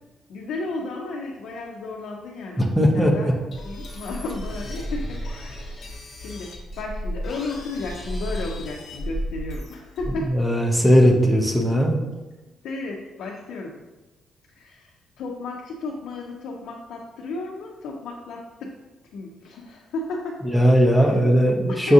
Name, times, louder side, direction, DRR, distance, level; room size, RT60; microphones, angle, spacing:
voice 1, 0.3-3.4 3.6-5.7 6.2-10.3 12.6-13.8 14.5-18.8 19.1-20.4 21.0-21.2 21.7-21.9, left 3 dB, 75° left, -1 dB, 0.5 m, -34 dB
voice 2, 2.6-3.3 10.2-12.0 20.4-21.9, equal, 5° right, 1 dB, 0.5 m, -18 dB
sound 1, 3.5-10.3, equal, 40° left, 0.7 m, -33 dB
6.0 x 2.4 x 2.7 m, 1.1 s
cardioid pair, 165°, 0 cm